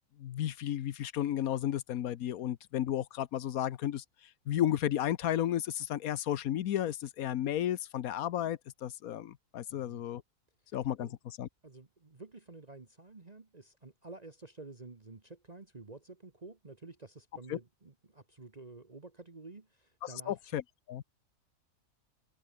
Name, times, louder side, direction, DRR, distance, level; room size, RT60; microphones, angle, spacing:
voice 1, 0.2-4.0 4.5-10.2 10.7-11.1 11.4-11.5 17.5-17.6 20.3-20.6 20.9-21.0, left 11 dB, 85° left, 1.3 m, -33 dB
voice 2, 9.7-10.0 11.0-11.2 11.6-20.6, right 3 dB, 30° right, 1.5 m, -50 dB
omnidirectional pair, 1.5 m